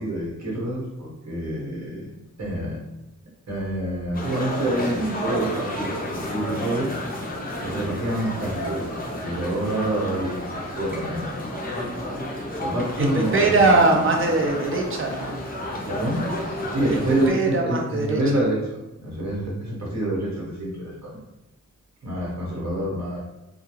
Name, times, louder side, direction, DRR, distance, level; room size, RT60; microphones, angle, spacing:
voice 1, 0.0-2.1 2.4-2.8 3.5-6.9 7.6-8.9 9.2-11.4 12.6-13.7 15.9-16.2 16.7-21.2 22.0-23.2, right 1 dB, 65° right, -5 dB, 1.2 m, -27 dB
sound 1, 4.1-17.3, left 1 dB, 30° left, 0.6 m, -31 dB
voice 2, 13.0-15.4 16.9-17.0 17.3-18.2, right 3 dB, 45° right, 2 dB, 0.5 m, -21 dB
2.3 x 2.3 x 3.0 m, 0.93 s
wide cardioid pair, 100°, 29 cm